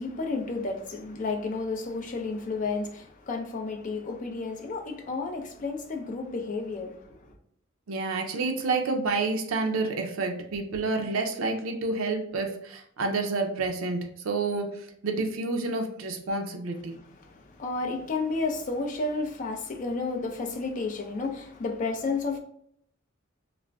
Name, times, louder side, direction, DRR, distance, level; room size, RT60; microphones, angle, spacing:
voice 1, 0.0-7.3 17.2-22.4, left 3 dB, 40° left, 0.4 m, -32 dB
voice 2, 7.9-17.0, right 3 dB, 75° right, 0.5 m, -29 dB
2.4 x 2.0 x 3.3 m
head